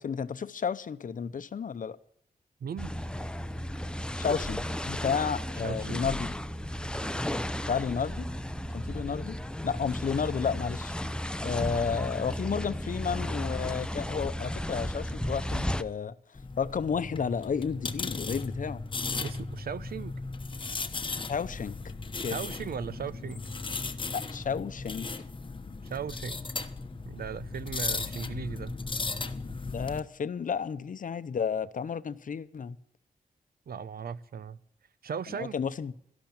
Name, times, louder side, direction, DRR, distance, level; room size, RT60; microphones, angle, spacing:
voice 1, 0.0-2.0 4.2-6.3 7.7-8.3 8.7-9.4 9.6-10.9 11.4-16.1 16.6-18.8 21.3-21.8 22.2-22.4 24.1-25.1 29.6-32.8 35.4-35.9, left 6 dB, 60° left, 0.8 m, -32 dB
voice 2, 2.6-2.9 5.6-6.0 19.2-20.1 22.3-23.4 25.8-26.4 27.0-28.7 33.7-34.6 35.0-35.6, right 7 dB, 85° right, 0.7 m, -37 dB
sound 1, 2.8-15.8, left 1 dB, 5° left, 0.6 m, -34 dB
sound 2, 16.3-30.0, left 3 dB, 35° left, 1.0 m, -36 dB
13.0 x 11.5 x 8.9 m
wide cardioid pair, 130°, 15 cm